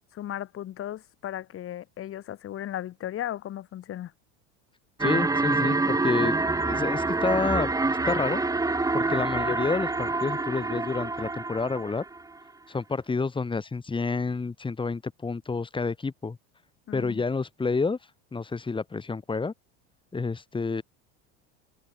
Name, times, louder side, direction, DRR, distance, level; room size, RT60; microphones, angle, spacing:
voice 1, 0.1-4.1 16.9-17.2, left 12 dB, 40° left, 6.4 m, -36 dB
voice 2, 5.0-6.3 6.6-7.8 8.1-8.4 8.9-12.0 12.7-16.4 16.9-18.0 18.3-19.5 20.1-20.8, left 4 dB, 15° left, 3.7 m, -29 dB
sound 1, 5.0-12.2, right 3 dB, 10° right, 3.8 m, -27 dB
supercardioid pair, 125°, 33 cm